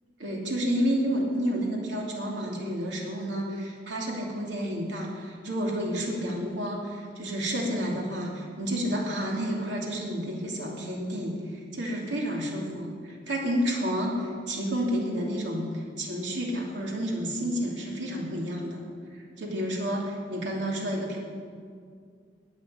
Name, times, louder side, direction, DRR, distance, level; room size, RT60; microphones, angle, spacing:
voice 1, 0.2-18.8 19.1-21.2, equal, 85° right, -2 dB, 2.8 m, -30 dB
11.5 x 7.7 x 9.8 m, 2.1 s
head